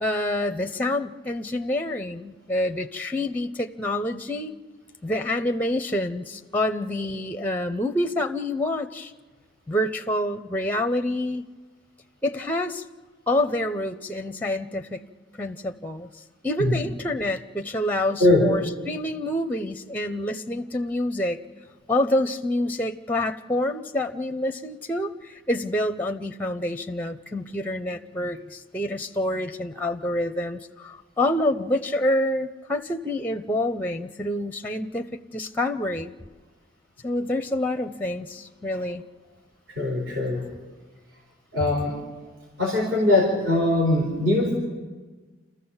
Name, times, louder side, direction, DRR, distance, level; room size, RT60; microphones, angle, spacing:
voice 1, 0.0-4.5 5.0-9.1 9.7-11.4 12.2-12.8 13.3-15.0 15.4-16.1 16.4-21.4 21.9-36.1 37.0-39.0, left 1 dB, 10° left, 8 dB, 0.6 m, -27 dB
voice 2, 39.8-40.4 41.5-41.9 42.6-44.5, left 2 dB, 60° right, -2 dB, 4.4 m, -21 dB
29.0 x 14.5 x 7.1 m, 1.4 s
head